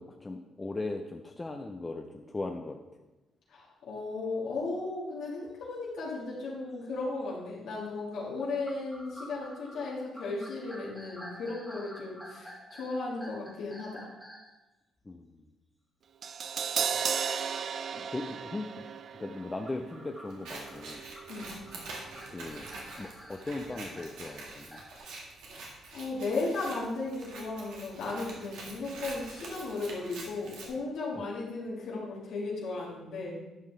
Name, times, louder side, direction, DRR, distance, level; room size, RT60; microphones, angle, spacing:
voice 1, 0.0-2.8 15.0-15.5 16.9-17.0 17.9-18.9 19.2-21.0 22.3-22.7 23.0-24.8 28.0-28.1 31.1-31.3, left 2 dB, 20° left, 4 dB, 0.5 m, -38 dB
voice 2, 3.5-14.1 21.3-21.5 25.5-25.6 25.9-33.4, left 3 dB, 80° left, -5 dB, 1.9 m, -35 dB
sound 1, 5.5-5.7 6.2-6.3 7.0-7.3 8.4-14.5 19.4-25.0, equal, ahead, 1.7 m, -49 dB
Crash cymbal, 16.2-22.4 22.6-22.8, right 7 dB, 55° right, 0.4 m, -36 dB
Scissors, 20.3-30.7, right 2 dB, 90° right, 1.7 m, -45 dB
10.5 x 5.6 x 3.3 m, 1.0 s
cardioid pair, 90°, 0 cm